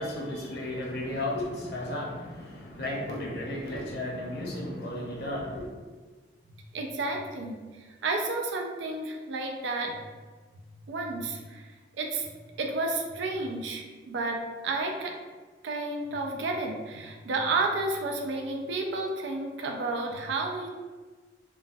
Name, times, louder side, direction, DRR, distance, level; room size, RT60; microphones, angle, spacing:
voice 1, 0.0-5.7, left 1 dB, 60° left, -3 dB, 0.7 m, -34 dB
voice 2, 6.7-7.6 8.0-9.9 10.9-11.6 12.0-12.3 12.6-15.1 15.6-20.7, right 3 dB, 90° right, 2 dB, 0.4 m, -31 dB
3.0 x 2.2 x 2.6 m, 1.4 s
head